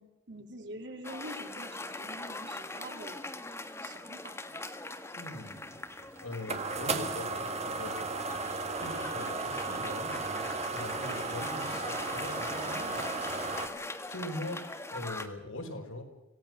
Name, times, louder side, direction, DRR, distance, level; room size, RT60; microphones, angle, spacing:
voice 1, 0.0-3.2 3.8-4.7, right 1 dB, 55° right, 3 dB, 3.6 m, -46 dB
Cheering / Applause, 1.0-15.3, left 2 dB, 15° left, 1.4 m, -42 dB
voice 2, 5.2-5.7 6.2-8.1 8.8-13.5 14.1-16.0, left 1 dB, 80° left, 2 dB, 5.2 m, -42 dB
sound 1, 5.7-13.7, right 3 dB, 30° right, 1.7 m, -35 dB
26.0 x 18.0 x 6.5 m, 0.98 s
head